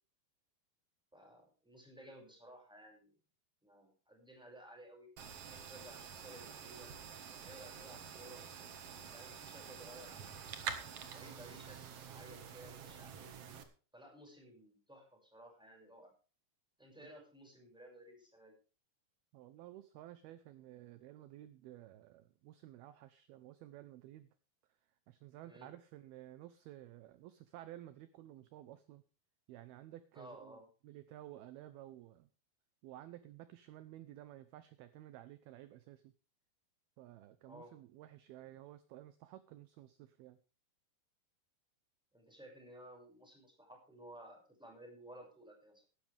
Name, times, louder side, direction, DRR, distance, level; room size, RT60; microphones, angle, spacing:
voice 1, 1.1-3.1 3.6-5.1 5.5-6.9 7.4-8.4 9.1-10.4 11.0-11.8 12.0-13.3 13.9-16.1 16.8-18.5 25.4-25.7 30.1-30.6 37.4-37.7 42.1-45.8, right 1 dB, ahead, 1 dB, 5.8 m, -56 dB
sound 1, 5.2-13.6, right 7 dB, 60° right, 1.6 m, -48 dB
voice 2, 19.3-24.3 25.1-29.0 29.5-32.3 32.8-36.1 37.0-40.4, right 14 dB, 75° right, 12 dB, 2.4 m, -53 dB
17.0 x 13.0 x 3.5 m, 0.36 s
omnidirectional pair, 5.1 m